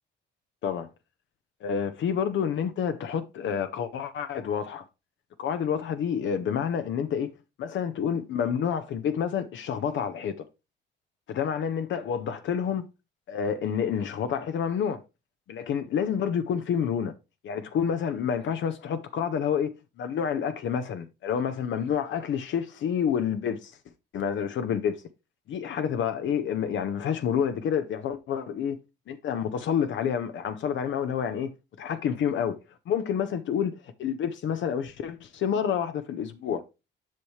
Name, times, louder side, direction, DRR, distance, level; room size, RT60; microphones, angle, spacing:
voice 1, 1.6-4.9 5.4-7.3 7.6-10.3 11.3-12.9 13.3-15.0 15.5-17.1 17.4-19.7 20.0-23.7 24.1-25.0 25.5-28.8 29.1-32.6 32.9-33.7 34.0-36.6, left 8 dB, 70° left, 0.7 m, -28 dB
7.5 x 5.6 x 3.2 m
cardioid pair, 90°, 20 cm